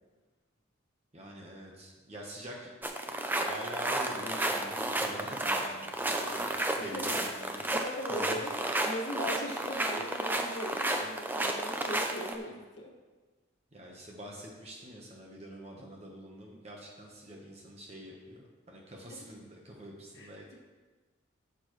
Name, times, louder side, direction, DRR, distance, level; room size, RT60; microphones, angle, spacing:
voice 1, 1.1-2.7 3.1-6.4 6.8-7.6 8.1-8.4 13.7-20.5, right 1 dB, 30° right, -1 dB, 1.1 m, -45 dB
sound 1, 2.8-12.4, right 1 dB, 10° right, 0.6 m, -32 dB
voice 2, 6.8-7.2 7.7-8.5 8.8-12.9 19.1-19.2 20.1-20.5, equal, 60° left, -1 dB, 1.5 m, -39 dB
14.5 x 7.0 x 3.2 m, 1.3 s
head